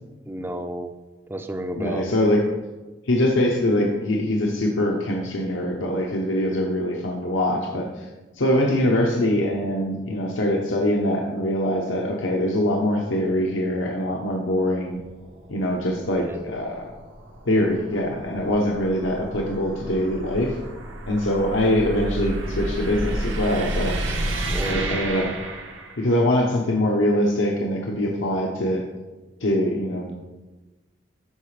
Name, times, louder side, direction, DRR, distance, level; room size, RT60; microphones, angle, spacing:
voice 1, 0.3-0.9 1.3-2.1 16.1-16.4 24.5-25.0, right 1 dB, 10° right, 7 dB, 0.4 m, -32 dB
voice 2, 1.8-2.5 3.1-8.1 8.3-15.0 15.5-16.9 17.5-20.6 21.1-24.0 24.6-25.3 26.0-28.8 29.4-30.1, left 1 dB, 85° left, 0 dB, 0.8 m, -23 dB
sound 1, 14.8-26.2, right 1 dB, 85° right, 1.1 m, -31 dB
13.0 x 4.9 x 3.3 m, 1.2 s
head